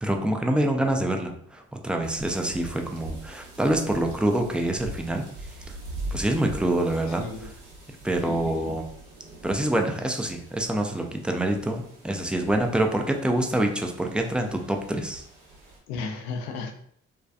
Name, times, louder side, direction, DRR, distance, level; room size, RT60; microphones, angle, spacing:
voice 1, 0.0-5.2 6.1-7.2 8.0-8.8 9.4-15.2, right 1 dB, 5° right, 3 dB, 0.3 m, -26 dB
sound 1, 2.0-15.8, right 2 dB, 70° right, 0.9 m, -42 dB
voice 2, 7.2-7.5 8.2-8.7 15.9-16.7, left 4 dB, 80° left, 4 dB, 0.5 m, -34 dB
2.6 x 2.3 x 2.2 m, 0.64 s
hypercardioid pair, 45°, 33 cm